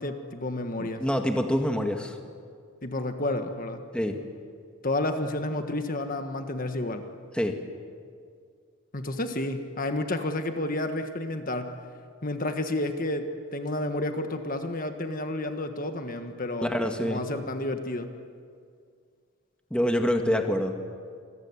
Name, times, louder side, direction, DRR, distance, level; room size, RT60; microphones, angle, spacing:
voice 1, 0.0-1.0 2.8-3.8 4.8-7.1 8.9-11.8 12.2-16.7 17.0-18.1, left 1 dB, 40° left, 7 dB, 1.5 m, -30 dB
voice 2, 0.8-2.2 3.9-4.2 7.3-7.5 16.6-17.2 19.7-20.7, equal, 5° left, 4 dB, 1.7 m, -26 dB
27.5 x 22.0 x 9.8 m, 2.2 s
head